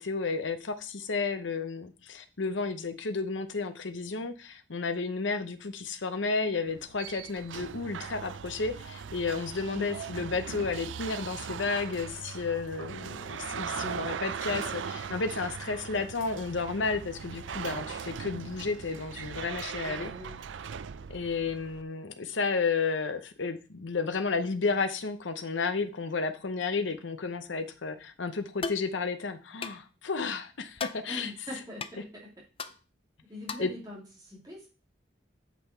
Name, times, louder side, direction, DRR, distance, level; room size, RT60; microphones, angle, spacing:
voice 1, 0.0-20.1 21.1-31.3 33.6-33.7, left 4 dB, 85° left, 9 dB, 0.8 m, -32 dB
sound 1, 6.7-21.8, right 7 dB, 85° right, 0.4 m, -39 dB
voice 2, 19.8-20.4 31.1-32.2 33.3-34.7, left 1 dB, 20° right, -4 dB, 2.8 m, -42 dB
sound 2, 28.6-28.9 29.6-29.8 30.8-31.0 31.8-31.9 32.6-32.7 33.5-33.7, left 5 dB, 30° left, 0.5 m, -35 dB
8.4 x 5.7 x 4.4 m, 0.34 s
head